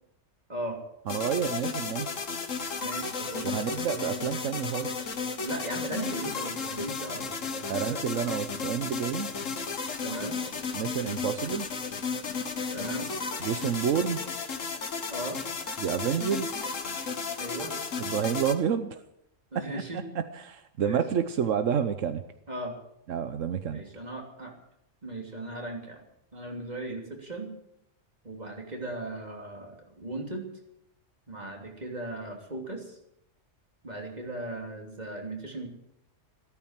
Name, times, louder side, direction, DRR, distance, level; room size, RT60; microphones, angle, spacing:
sound 1, 1.1-18.5, left 5 dB, 80° left, 1.8 m, -34 dB
voice 1, 1.1-2.1 3.4-5.1 7.7-9.3 10.7-11.7 13.4-14.2 15.8-16.6 18.0-19.0 19.5-22.2 23.1-23.8, right 8 dB, 80° right, 10 dB, 1.2 m, -29 dB
voice 2, 2.8-3.5 5.4-8.3 10.0-10.4 12.7-13.1 15.1-15.4 17.4-17.8 19.5-20.1 20.8-21.0 22.5-22.7 23.7-24.5 25.0-26.0 26.3-27.5 28.2-30.5 31.3-33.0 33.8-35.7, right 2 dB, 35° right, 2 dB, 3.2 m, -37 dB
14.5 x 13.5 x 7.4 m, 0.77 s
omnidirectional pair, 1.3 m